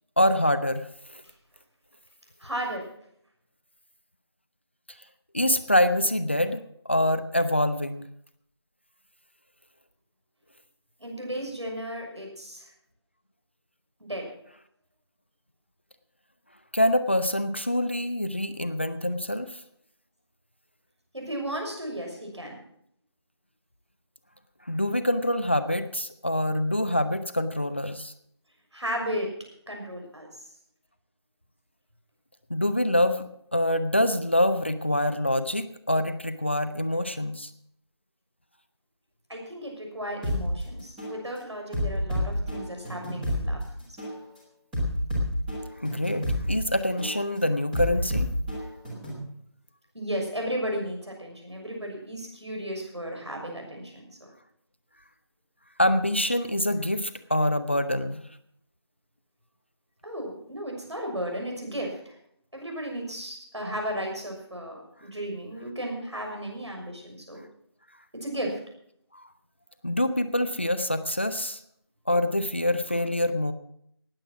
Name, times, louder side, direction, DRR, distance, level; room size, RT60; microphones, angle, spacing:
voice 1, 0.2-0.9 1.1-1.2 5.3-8.1 16.7-19.5 24.7-28.1 32.5-37.5 45.8-48.3 55.8-58.2 69.1-69.2 69.8-71.6 72.1-73.5, left 1 dB, 25° left, 10 dB, 0.5 m, -25 dB
voice 2, 2.4-2.8 11.0-12.7 14.0-14.3 21.1-22.6 28.7-29.3 29.7-30.3 39.3-43.6 49.9-54.0 60.0-62.2 62.5-67.4 68.2-68.6, equal, 80° right, 1 dB, 6.5 m, -34 dB
sound 1, 40.2-40.4 41.0-41.2 41.7-43.5 44.0-44.2 44.7-46.5 47.0-47.2 47.7-49.2, left 1 dB, 5° right, 1.3 m, -29 dB
18.5 x 7.8 x 5.9 m, 0.69 s
figure-of-eight pair, 165°, 14 cm